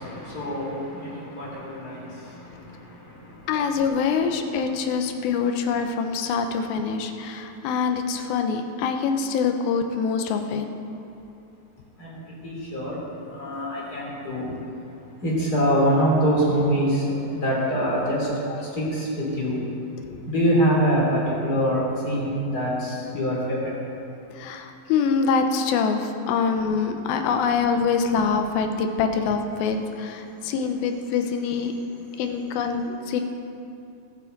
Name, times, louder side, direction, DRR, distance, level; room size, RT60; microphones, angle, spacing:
voice 1, 0.0-2.0 12.0-12.2 12.4-13.0 13.3-14.5 15.2-18.3 18.7-19.6 20.3-23.7, equal, 25° left, -6 dB, 3.3 m, -24 dB
voice 2, 3.5-10.7 18.5-18.6 20.0-20.2 24.4-31.7 32.2-33.2, left 5 dB, 85° left, 6 dB, 2.7 m, -25 dB
21.0 x 7.4 x 4.0 m, 2.8 s
omnidirectional pair, 4.1 m